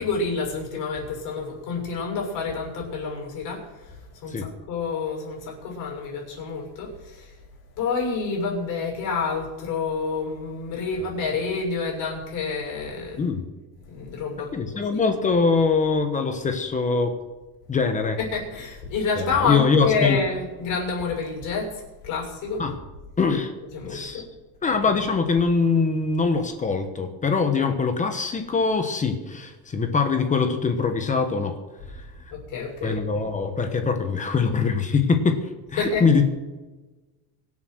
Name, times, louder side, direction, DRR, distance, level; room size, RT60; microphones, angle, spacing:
voice 1, 0.0-3.9 4.2-7.3 7.8-13.2 13.9-15.0 18.2-21.7 22.0-22.6 23.7-24.3 32.3-33.2 35.8-36.0, left 4 dB, 50° left, -1 dB, 6.9 m, -28 dB
voice 2, 13.2-13.5 14.5-17.1 17.7-18.2 19.2-20.2 22.6-22.8 23.2-23.5 23.9-24.2 24.6-31.5 32.8-35.4 35.7-36.3, left 4 dB, 20° left, 6 dB, 1.2 m, -23 dB
23.5 x 8.2 x 6.3 m, 1.2 s
cardioid pair, 170°, 40 cm